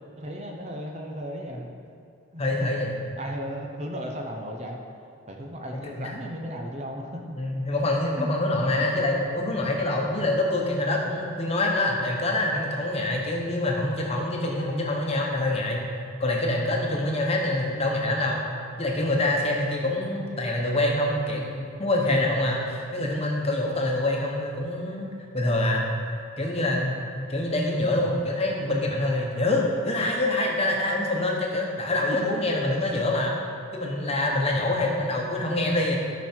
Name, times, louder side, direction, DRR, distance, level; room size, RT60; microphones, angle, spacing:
voice 1, 0.2-1.7 2.3-2.7 3.2-4.8 5.3-7.4 8.2-8.3 32.1-32.3, equal, 30° right, 1 dB, 0.8 m, -35 dB
voice 2, 2.4-2.9 6.0-6.1 7.4-15.8 16.2-18.4 18.8-25.1 25.3-25.9 26.4-33.3 33.7-36.0, left 1 dB, 30° left, -1 dB, 1.2 m, -25 dB
13.0 x 6.3 x 4.5 m, 2.5 s
head